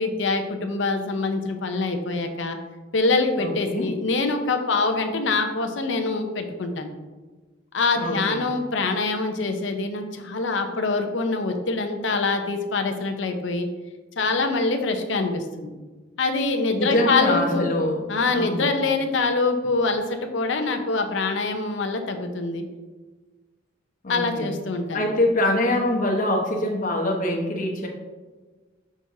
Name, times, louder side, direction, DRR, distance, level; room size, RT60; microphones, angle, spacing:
voice 1, 0.0-2.6 2.9-6.9 7.7-13.7 14.2-15.7 16.2-17.7 18.1-22.6 24.1-25.0, left 3 dB, 70° left, 5 dB, 0.7 m, -24 dB
voice 2, 3.4-3.9 7.9-8.5 16.8-18.1 18.3-18.7 24.0-24.6 24.9-27.9, left 1 dB, 45° left, 0 dB, 1.0 m, -24 dB
6.1 x 6.0 x 2.7 m, 1.3 s
head